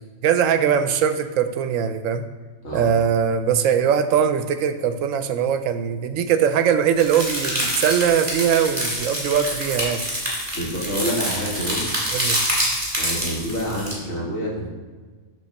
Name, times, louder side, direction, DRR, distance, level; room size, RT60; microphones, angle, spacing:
voice 1, 0.2-2.2 2.7-10.0 12.1-12.4, right 8 dB, 75° right, 9 dB, 1.0 m, -21 dB
sound 1, 7.0-13.9, equal, 20° right, 2.8 m, -26 dB
voice 2, 10.5-11.9 13.0-14.7, equal, 55° left, -3 dB, 2.0 m, -27 dB
8.7 x 3.6 x 6.3 m, 1.4 s
omnidirectional pair, 1.4 m